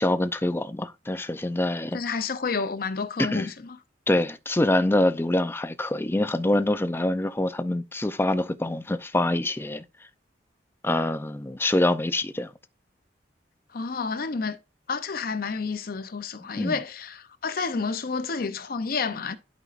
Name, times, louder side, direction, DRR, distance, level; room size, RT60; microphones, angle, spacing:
voice 1, 0.0-2.2 3.2-3.5 4.1-9.8 10.8-12.5 16.4-16.8, left 1 dB, 15° left, 0.5 m, -25 dB
voice 2, 1.9-3.5 13.7-14.6 14.9-17.2 17.4-19.4, left 4 dB, 55° left, 0.6 m, -29 dB
11.0 x 5.3 x 2.5 m
head